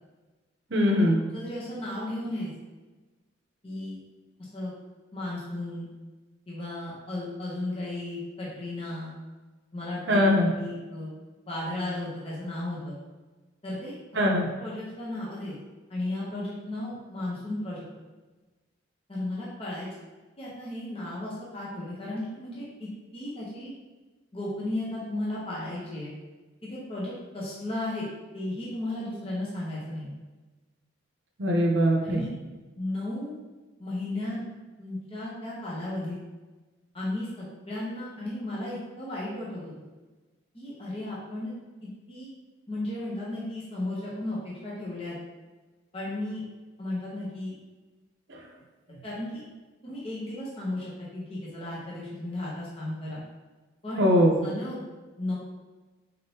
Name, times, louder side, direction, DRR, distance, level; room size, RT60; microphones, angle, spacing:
voice 1, 0.7-1.2 10.1-10.5 14.2-14.5 31.4-32.2 48.3-48.4 54.0-54.3, equal, 60° right, 0 dB, 0.7 m, -21 dB
voice 2, 1.3-2.5 3.6-4.0 4.4-4.7 5.1-5.9 6.5-9.1 9.7-10.2 10.6-11.1 11.5-13.0 13.6-13.9 14.6-15.5 15.9-17.8 19.1-19.9 20.4-23.7 24.3-26.1 26.6-28.1 28.3-30.1 32.0-32.3 32.8-33.4 33.8-34.4 34.8-36.2 36.9-39.7 40.5-41.5 41.8-42.3 42.7-45.2 45.9-46.4 46.8-47.5 49.0-49.4 49.8-53.2 53.8-54.1 54.4-54.8 55.2-55.4, left 1 dB, 30° left, -6 dB, 0.8 m, -34 dB
4.1 x 3.6 x 2.8 m, 1.2 s
head